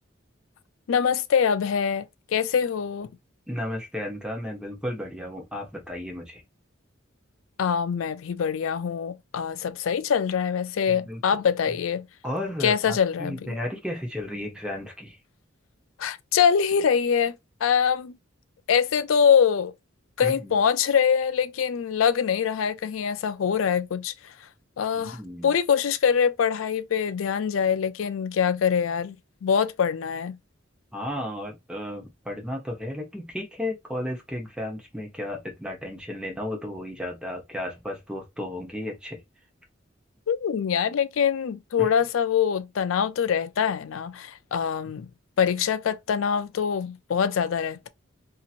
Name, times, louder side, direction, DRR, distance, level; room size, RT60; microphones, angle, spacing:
voice 1, 0.9-3.1 7.6-12.1 12.6-13.6 16.0-17.4 17.6-18.2 18.7-19.7 20.2-24.3 24.8-25.2 25.4-29.2 29.4-30.4 40.3-45.1 45.4-47.9, left 7 dB, 85° left, 0.4 m, -24 dB
voice 2, 3.5-6.4 10.9-11.2 12.2-15.2 20.2-20.5 24.9-25.6 30.9-39.2 41.8-41.9, left 1 dB, 5° right, 1.0 m, -34 dB
2.8 x 2.8 x 2.5 m
head